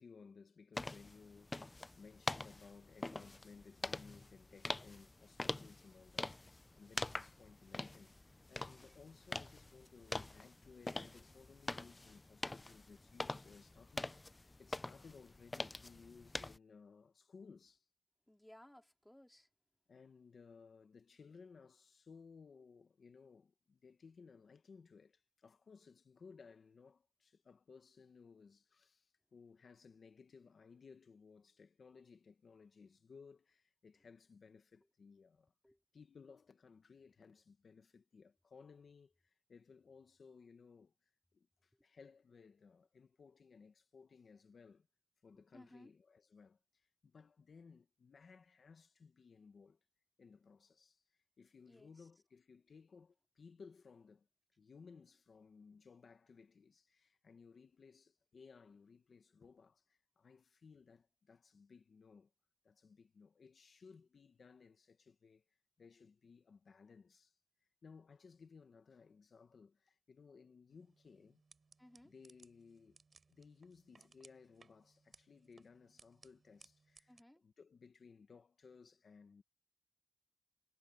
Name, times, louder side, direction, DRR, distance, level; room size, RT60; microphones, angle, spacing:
voice 1, 0.0-17.9 19.9-35.5 35.9-44.9 45.2-49.8 50.2-54.3 54.6-62.3 62.6-67.4 67.8-71.4 72.0-73.0 73.3-79.4, left 5 dB, 80° left, 1.3 m, -60 dB
sound 1, 0.8-16.6, left 2 dB, 30° left, 0.4 m, -45 dB
voice 2, 18.3-19.5 35.6-35.8 45.5-45.9 51.6-52.1 71.8-72.1 77.1-77.4, left 1 dB, 10° left, 3.8 m, -61 dB
sound 2, 70.7-77.2, right 4 dB, 60° right, 5.2 m, -67 dB
wide cardioid pair, 85°, 0 cm